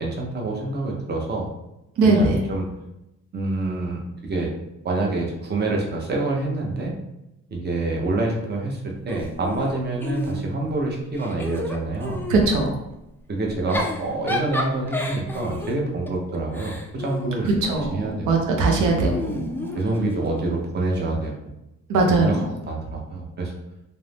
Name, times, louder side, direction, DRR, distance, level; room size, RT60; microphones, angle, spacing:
voice 1, 0.0-1.5 2.0-2.7 3.3-4.5 4.8-6.9 7.5-12.6 13.3-18.3 18.8-19.0 19.7-21.3 22.1-22.4 22.6-23.5, right 2 dB, 35° right, 0 dB, 0.7 m, -27 dB
voice 2, 2.0-2.3 12.3-12.8 17.6-17.9 18.3-19.7 21.9-22.4, right 3 dB, 80° right, 1 dB, 0.6 m, -20 dB
Giggle / Chuckle chortle, 9.1-10.7 11.1-12.5 13.5-18.0 19.0-20.4, left 2 dB, 5° left, 0.3 m, -32 dB
2.5 x 2.0 x 3.2 m, 0.90 s
cardioid pair, 90°, 30 cm